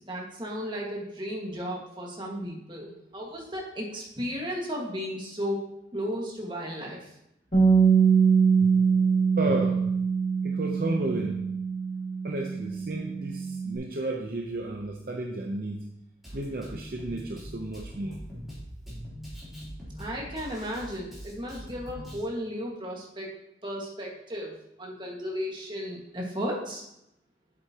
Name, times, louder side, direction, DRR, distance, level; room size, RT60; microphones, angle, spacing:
voice 1, 0.0-7.0 20.0-23.4 23.6-26.8, equal, 25° right, -2 dB, 1.7 m, -34 dB
Bass guitar, 7.5-13.8, right 6 dB, 35° left, 2.2 m, -23 dB
voice 2, 9.4-9.8 10.4-11.4 12.2-15.9 16.3-18.2, right 2 dB, 55° right, 1 dB, 0.7 m, -32 dB
Drum kit, 16.2-22.2, equal, ahead, 3.2 m, -42 dB
8.0 x 7.9 x 2.9 m, 0.82 s
head